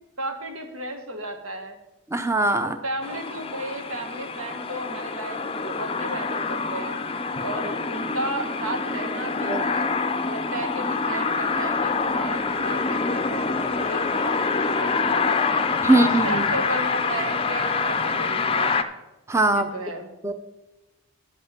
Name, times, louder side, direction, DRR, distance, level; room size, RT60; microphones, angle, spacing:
voice 1, 0.2-1.8 2.6-7.0 7.4-9.9 10.2-15.4 15.8-18.7 19.5-20.1, right 1 dB, 75° right, 5 dB, 1.6 m, -34 dB
voice 2, 2.1-2.8 9.5-9.6 15.8-16.4 19.3-19.7 20.2-20.3, right 2 dB, 15° right, 8 dB, 0.6 m, -20 dB
sound 1, 3.0-18.8, left 4 dB, 25° left, 0.5 m, -26 dB
11.5 x 5.5 x 7.4 m, 0.99 s
head